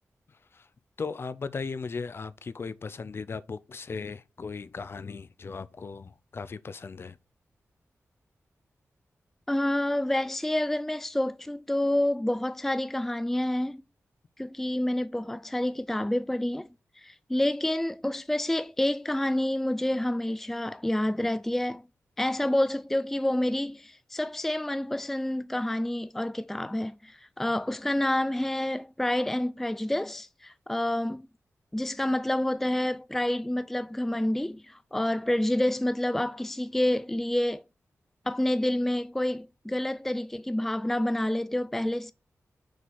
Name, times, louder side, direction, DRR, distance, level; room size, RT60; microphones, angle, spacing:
voice 1, 0.3-0.7 1.0-7.2, left 4 dB, 50° left, 0.6 m, -37 dB
voice 2, 9.5-13.8 14.4-16.7 17.0-21.8 22.2-31.3 31.7-37.6 38.3-42.1, left 1 dB, 5° left, 0.3 m, -28 dB
6.5 x 4.8 x 4.2 m
wide cardioid pair, 105°, 5 cm